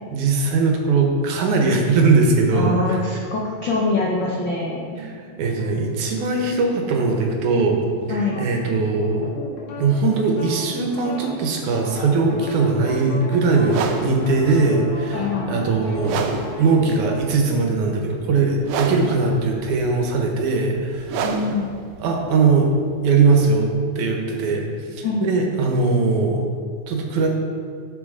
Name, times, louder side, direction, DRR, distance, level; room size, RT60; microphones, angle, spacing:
voice 1, 0.1-3.0 5.0-7.8 8.1-9.3 9.8-16.3 16.6-21.2 22.0-22.7 23.0-23.7 24.0-26.4 26.9-27.3, right 4 dB, 75° right, 1 dB, 2.4 m, -20 dB
voice 2, 2.5-4.8 8.1-8.4 15.1-15.6 21.2-21.7 25.0-25.2, left 3 dB, 85° left, -3 dB, 1.0 m, -24 dB
sound 1, 3.9-17.2, left 1 dB, 60° left, 2.6 m, -37 dB
sound 2, 13.6-23.5, right 6 dB, 90° right, 2.2 m, -30 dB
9.9 x 6.9 x 3.7 m, 2.2 s
omnidirectional pair, 3.6 m